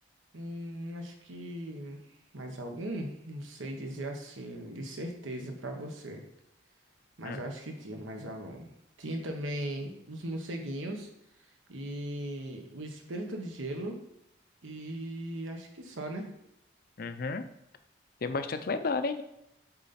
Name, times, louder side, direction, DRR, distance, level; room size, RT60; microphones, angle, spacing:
voice 1, 0.3-2.0 2.3-6.2 7.2-8.7 9.0-11.1 11.7-14.0 14.6-16.3, right 1 dB, 85° right, 3 dB, 1.1 m, -38 dB
voice 2, 17.0-17.5 18.2-19.2, left 4 dB, 50° left, 10 dB, 0.5 m, -32 dB
7.1 x 4.0 x 4.2 m, 0.82 s
head